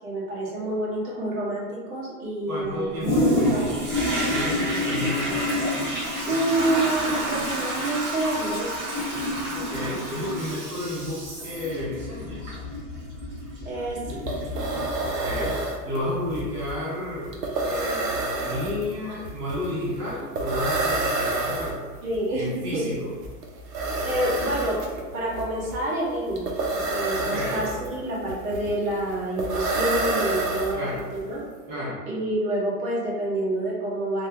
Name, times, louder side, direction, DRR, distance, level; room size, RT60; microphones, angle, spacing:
voice 1, 0.0-3.6 6.3-8.8 13.6-14.2 19.1-19.2 22.0-22.9 24.0-24.8 25.1-30.8 31.3-31.4 32.1-34.3, right 1 dB, 60° right, -6 dB, 1.5 m, -28 dB
voice 2, 2.5-3.7 4.3-5.7 9.5-12.6 15.2-15.6 15.8-17.3 17.6-21.8 22.3-23.1 27.2-27.7 30.7-31.1 31.7-32.0, left 1 dB, 15° right, -8 dB, 0.4 m, -32 dB
Toilet flush, 3.0-15.4 16.0-16.1, equal, 35° right, 1.4 m, -28 dB
sound 1, 13.8-13.9 14.1-31.2, right 2 dB, 85° right, 0.8 m, -29 dB
3.5 x 2.2 x 2.8 m, 1.5 s
hypercardioid pair, 135°, 47 cm